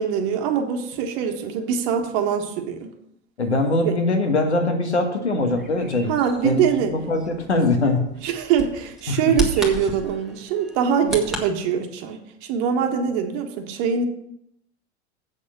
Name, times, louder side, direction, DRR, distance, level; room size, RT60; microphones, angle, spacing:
voice 1, 0.0-2.9 3.8-3.9 6.1-6.9 8.2-12.2 12.5-14.0, right 7 dB, 45° right, 5 dB, 1.4 m, -23 dB
voice 2, 3.4-6.1 6.4-8.2 9.1-9.3, left 2 dB, 80° left, 5 dB, 1.4 m, -22 dB
Bird vocalization bird call bird song, 5.4-11.4, right 1 dB, ahead, 1.6 m, -34 dB
8.1 x 6.5 x 5.9 m, 0.77 s
figure-of-eight pair, 85°, 33 cm